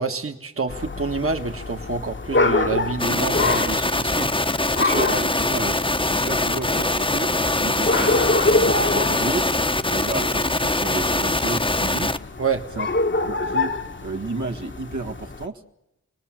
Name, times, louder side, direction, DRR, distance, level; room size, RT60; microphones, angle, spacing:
voice 1, 0.0-4.3 4.7-5.1 12.4-12.6, right 4 dB, 50° right, 5 dB, 1.5 m, -27 dB
sound 1, 0.7-15.5, left 2 dB, 40° left, 1.1 m, -26 dB
sound 2, 3.0-12.2, left 2 dB, 15° left, 0.9 m, -23 dB
voice 2, 4.9-7.3 7.6-9.4 9.9-12.1 12.7-12.9 13.3-13.7 14.0-15.6, right 3 dB, 75° right, 3 dB, 1.9 m, -32 dB
27.0 x 19.5 x 7.5 m, 0.90 s
wide cardioid pair, 75°, 30 cm